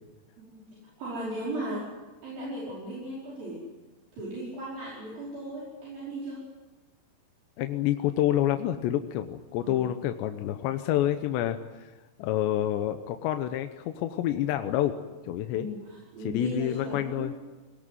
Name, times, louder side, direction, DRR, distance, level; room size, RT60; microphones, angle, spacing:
voice 1, 0.4-1.9 2.2-3.6 4.1-6.4 9.6-9.9 15.5-17.4, right 1 dB, 55° right, -6 dB, 6.8 m, -37 dB
voice 2, 7.6-11.9 12.2-15.0 15.2-15.7 16.2-17.3, left 12 dB, 85° left, 7 dB, 3.2 m, -28 dB
23.0 x 19.0 x 9.3 m, 1.2 s
omnidirectional pair, 5.0 m